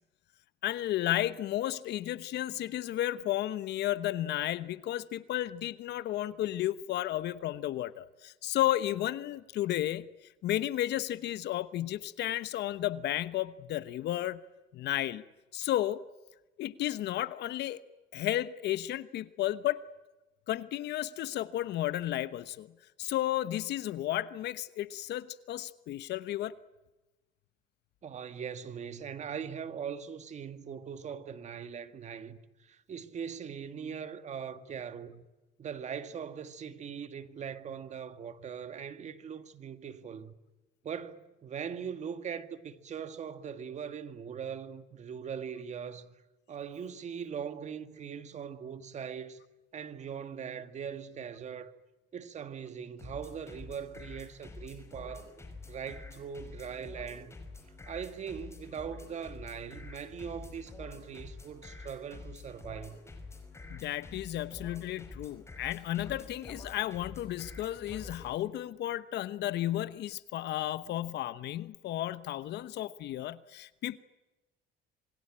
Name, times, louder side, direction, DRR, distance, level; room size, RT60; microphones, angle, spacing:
voice 1, 0.6-10.1 10.4-14.4 14.7-15.2 15.5-16.0 16.6-17.8 18.1-19.8 20.5-22.7 23.0-26.5 63.7-74.0, left 13 dB, 65° left, 1.1 m, -33 dB
voice 2, 28.0-35.3 35.6-40.3 40.8-46.2 46.5-49.4 49.7-51.7 52.1-55.3 55.7-57.4 57.8-63.0, right 7 dB, 35° right, 2.0 m, -41 dB
sound 1, 53.0-68.3, left 3 dB, 15° left, 5.5 m, -47 dB
27.0 x 23.0 x 8.8 m
cardioid pair, 140°, 19 cm